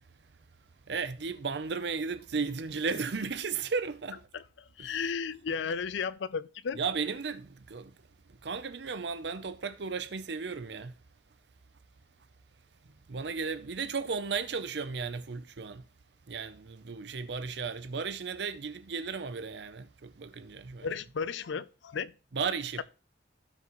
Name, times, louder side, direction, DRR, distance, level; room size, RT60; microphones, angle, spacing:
voice 1, 0.9-4.2 4.8-5.0 6.8-7.9 8.4-11.0 13.1-15.9 16.3-20.9 22.3-22.8, right 5 dB, 70° right, 0.6 m, -35 dB
voice 2, 4.8-6.8 20.8-22.1, left 6 dB, 80° left, 0.4 m, -34 dB
16.5 x 6.0 x 3.1 m
head